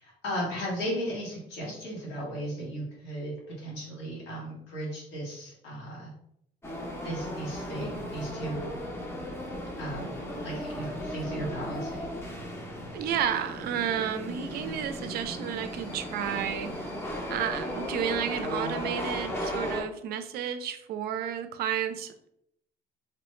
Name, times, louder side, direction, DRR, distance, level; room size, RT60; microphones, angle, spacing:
voice 1, 0.0-6.1 7.0-8.8 9.8-10.2 10.4-12.1, right 1 dB, 85° left, -4 dB, 1.2 m, -36 dB
sound 1, 6.6-19.8, equal, 15° left, 0.5 m, -36 dB
voice 2, 12.9-16.9 17.3-22.3, right 9 dB, 65° right, 9 dB, 0.4 m, -32 dB
3.0 x 2.0 x 3.0 m, 0.75 s
cardioid pair, 110°, 17 cm